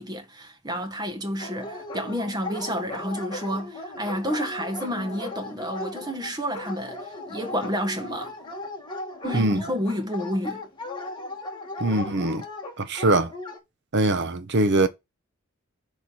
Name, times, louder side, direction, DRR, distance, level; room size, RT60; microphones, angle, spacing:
voice 1, 0.0-8.4 9.2-10.6, equal, 20° right, 1.5 m, -30 dB
Dog, 1.4-13.6, left 2 dB, 20° left, 1.9 m, -37 dB
voice 2, 11.8-12.4 12.8-13.3 13.9-14.9, right 2 dB, 55° right, 1.0 m, -22 dB
10.5 x 3.5 x 5.6 m
head